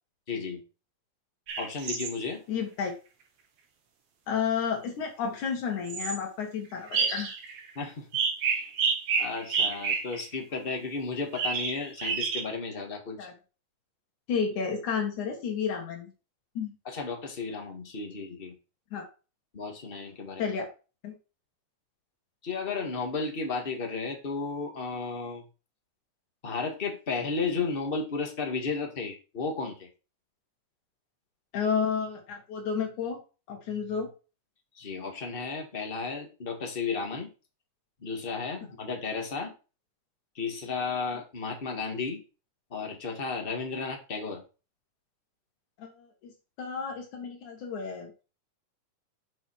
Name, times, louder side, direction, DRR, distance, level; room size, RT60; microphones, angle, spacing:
voice 1, 0.3-0.6 1.6-2.4 7.7-8.1 8.4-8.7 9.2-13.3 16.8-18.5 19.5-20.5 22.4-25.4 26.4-29.9 34.7-37.3 38.0-39.5 40.3-42.2 42.7-44.4, left 4 dB, 20° left, 2 dB, 1.7 m, -33 dB
sound 1, 1.5-2.1 5.9-6.2 6.9-7.7 8.1-10.3 11.3-12.4, right 5 dB, 60° right, 2.5 m, -29 dB
voice 2, 2.5-2.9 4.3-7.4 13.2-13.3 14.3-16.1 16.5-16.7 18.9-19.1 20.4-20.6 21.0-21.1 31.5-33.2 33.5-34.1 45.8-46.3 46.6-48.1, left 6 dB, 80° left, 1 dB, 3.3 m, -31 dB
8.8 x 6.0 x 4.8 m, 0.33 s
omnidirectional pair, 3.4 m